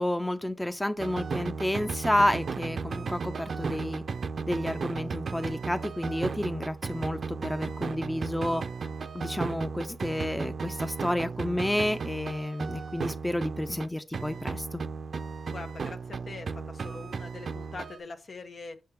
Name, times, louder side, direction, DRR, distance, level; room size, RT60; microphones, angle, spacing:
voice 1, 0.0-4.0 4.5-8.6 9.1-14.8, left 1 dB, 10° left, 0.6 m, -30 dB
sound 1, 1.0-13.9 14.1-18.0, right 5 dB, 70° right, 0.5 m, -35 dB
voice 2, 15.5-18.8, left 3 dB, 65° left, 1.0 m, -43 dB
6.7 x 4.3 x 3.6 m
cardioid pair, 45°, 0 cm